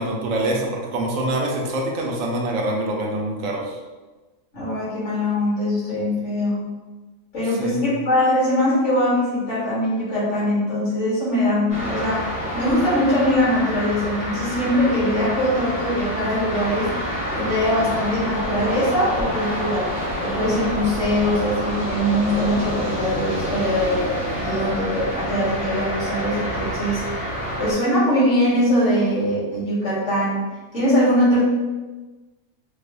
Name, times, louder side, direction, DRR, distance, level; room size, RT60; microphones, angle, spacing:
voice 1, 0.0-3.8 7.6-7.9, right 1 dB, 80° right, -1 dB, 1.0 m, -25 dB
voice 2, 4.5-6.7 7.3-16.9 17.3-19.9 20.2-24.0 24.4-27.0 27.6-30.4 30.7-31.4, left 1 dB, 65° left, -10 dB, 2.0 m, -22 dB
sound 1, 11.7-27.7, equal, 30° left, 0.8 m, -27 dB
4.7 x 2.0 x 2.5 m, 1.2 s
omnidirectional pair, 1.3 m